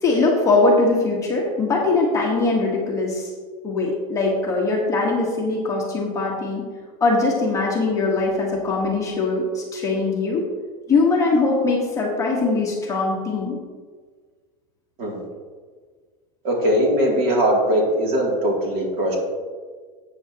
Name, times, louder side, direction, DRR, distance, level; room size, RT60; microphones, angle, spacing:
voice 1, 0.0-3.3 3.6-6.6 7.0-10.4 10.9-13.6, left 3 dB, 15° left, -3 dB, 1.3 m, -21 dB
voice 2, 16.4-19.2, equal, 45° right, -1 dB, 2.6 m, -20 dB
13.0 x 8.4 x 2.9 m, 1.5 s
supercardioid pair, 165°, 20 cm